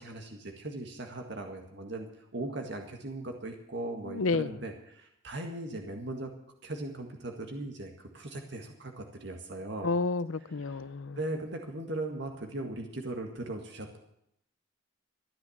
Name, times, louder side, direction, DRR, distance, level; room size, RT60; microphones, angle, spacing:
voice 1, 0.0-6.3 6.6-9.9 10.7-10.8 11.2-14.0, right 2 dB, 55° right, 3 dB, 1.9 m, -38 dB
voice 2, 4.1-4.5 9.8-11.2, left 3 dB, 75° left, 16 dB, 0.6 m, -30 dB
14.0 x 9.7 x 8.6 m, 0.75 s
head